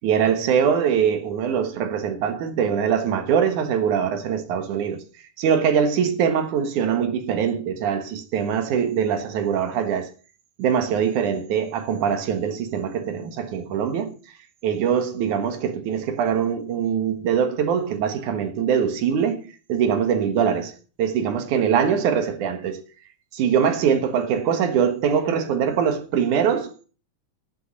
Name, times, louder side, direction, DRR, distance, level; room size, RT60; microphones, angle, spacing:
voice 1, 0.0-5.0 5.4-10.1 10.6-14.2 14.6-19.4 19.7-22.8 23.3-26.9, right 7 dB, 90° right, 2.9 m, -23 dB
12.0 x 7.2 x 6.3 m
omnidirectional pair, 3.4 m